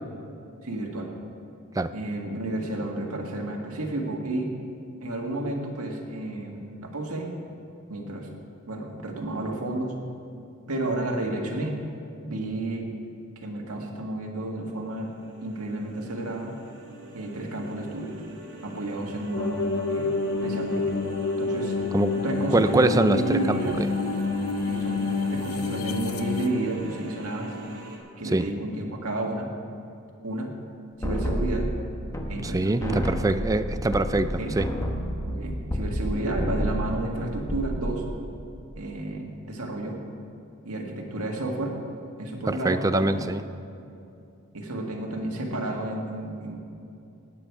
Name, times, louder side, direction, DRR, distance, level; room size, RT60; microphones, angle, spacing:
voice 1, 0.6-1.1 1.9-4.5 5.0-7.3 7.9-8.3 8.7-9.9 10.7-11.8 12.2-12.9 13.4-15.1 15.4-16.5 17.1-18.2 18.6-19.6 19.9-20.2 20.4-20.9 21.4-21.8 22.1-23.8 24.7-27.5 28.2-29.5 30.2-30.5 31.0-31.7 32.3-33.1 34.4-34.5 35.3-38.0 38.8-40.0 40.7-41.8 42.2-43.2 44.5-46.6, right 2 dB, 80° right, 1 dB, 1.9 m, -31 dB
sound 1, 14.6-28.0, right 2 dB, 55° right, 2.7 m, -44 dB
sound 2, 19.3-26.5, left 3 dB, 75° left, 0.7 m, -28 dB
voice 2, 22.5-23.6 28.3-28.5 32.4-34.7 42.5-43.4, right 2 dB, 15° right, 11 dB, 0.4 m, -23 dB
sound 3, 31.0-32.5 32.8-36.1 36.4-36.9 37.3-37.8, equal, 15° left, 1.2 m, -29 dB
18.5 x 9.0 x 4.8 m, 2.7 s
head